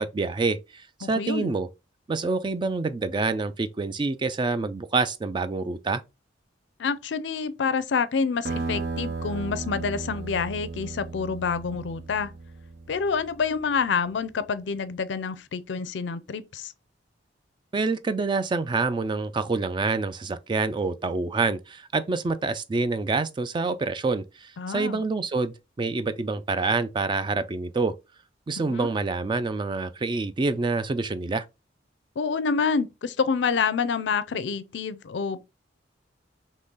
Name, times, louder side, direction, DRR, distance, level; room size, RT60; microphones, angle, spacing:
voice 1, 0.0-1.7 2.1-6.0 17.7-27.9 28.5-31.4, right 3 dB, 25° right, 0.3 m, -27 dB
voice 2, 1.0-1.5 6.8-12.3 12.9-16.7 24.6-25.0 28.6-28.9 32.2-35.4, left 5 dB, 75° left, 0.4 m, -27 dB
sound 1, 8.5-13.6, right 3 dB, 60° right, 0.7 m, -35 dB
3.7 x 3.1 x 3.9 m
head